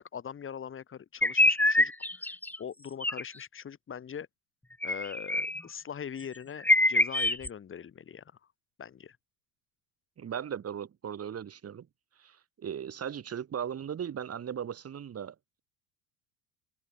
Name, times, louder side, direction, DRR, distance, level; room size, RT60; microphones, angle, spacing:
voice 1, 0.0-4.3 4.8-8.2 8.8-9.2, left 8 dB, 30° left, 2.3 m, -42 dB
sound 1, 1.2-2.6 3.0-3.2 4.8-5.6 6.2-6.3 6.6-7.5, left 1 dB, 5° left, 0.9 m, -25 dB
voice 2, 10.2-11.9 12.2-15.6, right 8 dB, 35° right, 5.9 m, -38 dB
open air
hypercardioid pair, 75°, 42 cm